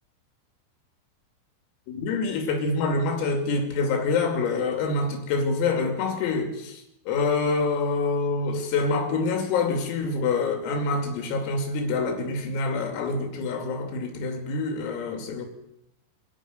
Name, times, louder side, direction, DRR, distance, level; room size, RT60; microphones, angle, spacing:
voice 1, 1.9-15.5, left 3 dB, 85° left, 5.4 m, -26 dB
26.5 x 12.0 x 9.6 m
omnidirectional pair, 5.9 m